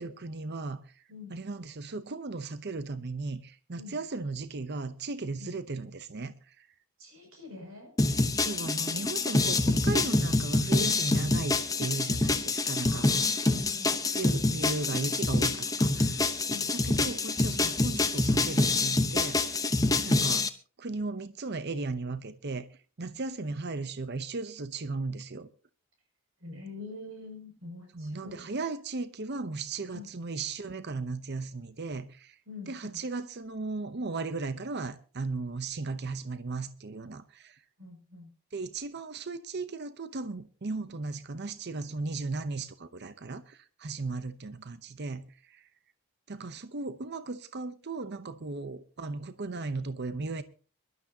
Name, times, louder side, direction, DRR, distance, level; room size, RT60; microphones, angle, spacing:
voice 1, 0.0-1.0 1.3-6.7 8.3-13.4 14.1-16.3 16.7-19.7 20.0-20.5 20.8-22.7 23.0-25.5 27.9-32.4 32.7-37.6 38.5-45.7 46.3-50.4, right 3 dB, 50° right, 0.8 m, -36 dB
voice 2, 7.0-7.9 8.7-9.9 11.2-11.3 12.8-13.9 16.5-16.7 26.4-28.5 29.9-30.1 32.5-33.0 37.8-38.3, left 3 dB, 75° right, 6.3 m, -46 dB
sound 1, 8.0-20.5, left 2 dB, 15° left, 0.9 m, -26 dB
24.0 x 12.5 x 2.8 m
head